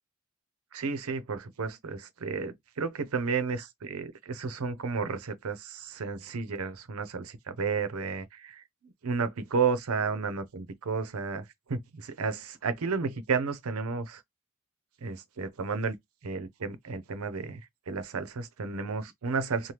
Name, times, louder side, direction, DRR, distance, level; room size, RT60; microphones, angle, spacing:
voice 1, 0.7-8.6 9.0-14.2 15.0-15.9 16.2-17.6 17.9-19.7, right 5 dB, 85° right, 0.6 m, -32 dB
2.9 x 2.1 x 3.2 m
head